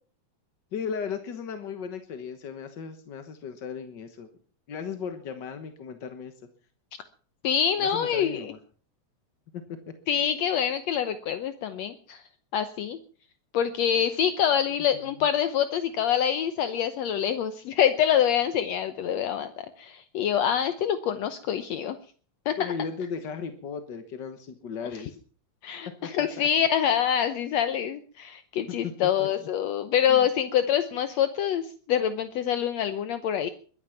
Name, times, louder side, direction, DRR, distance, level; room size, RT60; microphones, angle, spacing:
voice 1, 0.7-4.3 4.7-6.3 7.8-8.6 22.6-25.2 26.2-26.5 28.6-28.9 29.2-29.3 30.1-30.3, left 6 dB, 50° left, 8 dB, 1.4 m, -36 dB
voice 2, 7.4-8.5 10.1-12.2 12.5-13.0 13.5-22.0 22.5-22.7 25.6-33.5, left 9 dB, 70° left, 11 dB, 2.0 m, -26 dB
22.0 x 11.5 x 5.8 m, 0.43 s
omnidirectional pair, 3.4 m